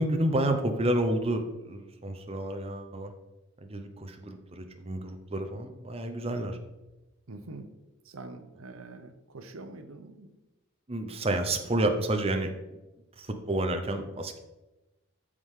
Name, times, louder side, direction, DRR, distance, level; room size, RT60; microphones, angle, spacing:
voice 1, 0.0-3.1 3.6-6.6 10.9-12.5 13.2-14.4, right 1 dB, 30° right, 6 dB, 0.7 m, -30 dB
voice 2, 7.3-7.7 8.0-10.3, right 2 dB, 85° right, 8 dB, 0.8 m, -45 dB
13.5 x 4.9 x 3.7 m, 1.0 s
head